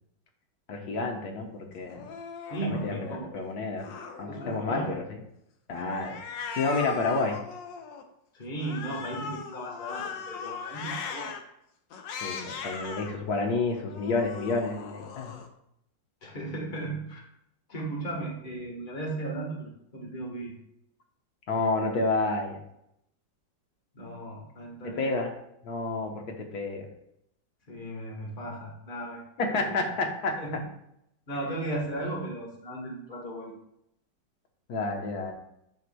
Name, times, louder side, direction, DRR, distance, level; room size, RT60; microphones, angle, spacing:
voice 1, 0.7-2.0 2.6-3.9 4.2-5.2 5.7-6.2 6.6-7.4 12.2-15.4 21.5-22.6 24.8-25.3 25.6-26.9 29.4-30.3 34.7-35.3, left 3 dB, 60° left, 2 dB, 1.5 m, -30 dB
Cat, 1.8-3.3 3.8-5.1 5.7-8.0 8.6-11.4 11.9-13.1 13.7-15.5, left 6 dB, 85° left, 1.4 m, -39 dB
voice 2, 2.5-3.3 4.3-4.9 8.4-11.3 16.2-17.2 17.7-20.5 23.9-25.2 27.7-29.2 29.5-29.8 30.4-30.6 31.3-33.5, right 2 dB, 30° left, -1 dB, 1.6 m, -36 dB
11.0 x 4.7 x 2.3 m, 0.77 s
omnidirectional pair, 1.9 m